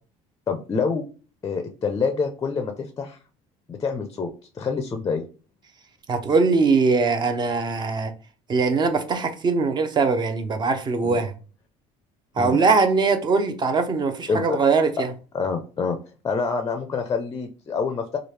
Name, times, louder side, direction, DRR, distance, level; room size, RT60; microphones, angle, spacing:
voice 1, 0.5-1.0 1.4-3.2 3.7-5.2 11.0-11.2 12.4-12.6 14.3-14.6 15.3-16.0 16.2-18.2, left 5 dB, 25° left, 0.4 m, -26 dB
voice 2, 6.1-8.1 8.5-11.3 12.4-15.1, right 4 dB, 30° right, 0.6 m, -21 dB
3.2 x 2.4 x 3.2 m
cardioid pair, 120°, 14 cm